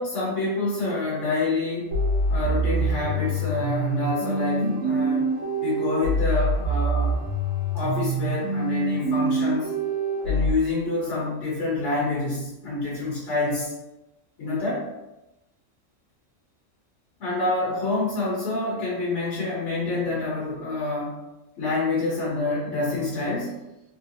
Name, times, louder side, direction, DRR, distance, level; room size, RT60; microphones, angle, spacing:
voice 1, 0.0-2.0 2.3-5.3 5.6-7.2 7.7-9.7 10.2-13.7 14.4-14.9 17.2-21.2 21.6-23.6, left 2 dB, 70° left, -7 dB, 1.2 m, -27 dB
sound 1, 1.9-10.5, right 2 dB, 85° right, 1.1 m, -25 dB
3.1 x 2.7 x 2.6 m, 0.96 s
omnidirectional pair, 1.3 m